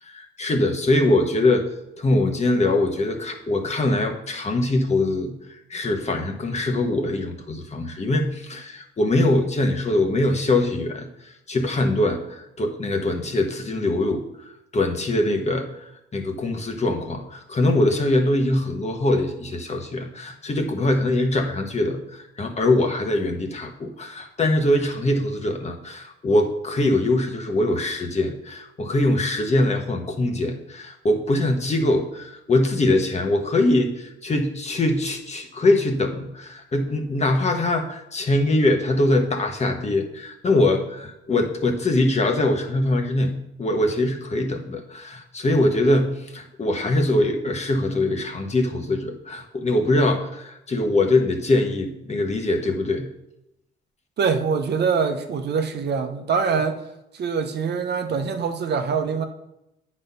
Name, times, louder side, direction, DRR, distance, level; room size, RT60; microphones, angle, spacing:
voice 1, 0.0-1.7 2.0-53.1, left 2 dB, 35° left, 4 dB, 1.3 m, -23 dB
voice 2, 54.2-56.8 57.1-59.2, right 5 dB, 55° right, 6 dB, 0.9 m, -24 dB
8.9 x 4.3 x 5.5 m, 0.85 s
cardioid pair, 90°, 20 cm